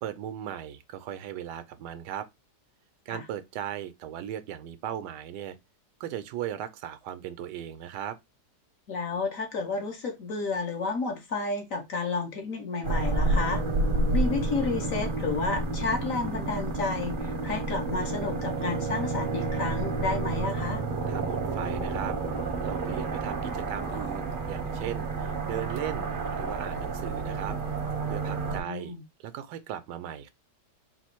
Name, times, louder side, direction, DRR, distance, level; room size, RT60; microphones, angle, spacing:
voice 1, 0.0-2.3 3.1-5.6 6.0-8.2 21.1-27.6 28.1-28.9 29.2-30.3, right 10 dB, 75° right, 1.2 m, -37 dB
voice 2, 8.9-13.6 14.1-20.8 28.5-29.0, left 4 dB, 55° left, 1.2 m, -31 dB
sound 1, 12.8-28.6, right 3 dB, 40° right, 0.7 m, -30 dB
4.1 x 2.5 x 4.3 m
omnidirectional pair, 1.9 m